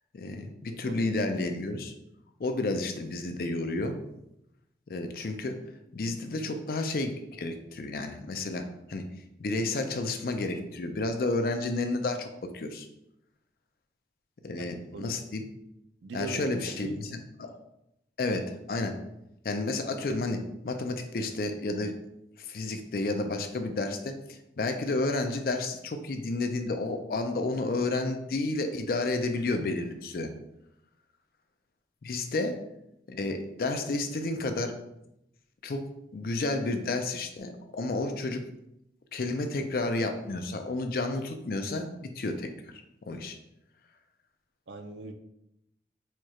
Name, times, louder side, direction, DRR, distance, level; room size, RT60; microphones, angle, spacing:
voice 1, 0.1-1.9 2.4-4.0 4.9-5.6 5.9-9.1 9.4-12.9 14.4-15.5 16.1-17.1 17.4-17.6 18.2-19.0 19.4-22.0 22.4-30.3 32.0-32.6 33.1-34.8 35.6-35.9 36.1-38.4 39.1-43.4, left 2 dB, 55° left, 6 dB, 0.4 m, -31 dB
voice 2, 16.0-17.2 44.7-45.1, right 2 dB, 85° right, 6 dB, 0.5 m, -39 dB
4.3 x 2.3 x 3.0 m, 0.83 s
head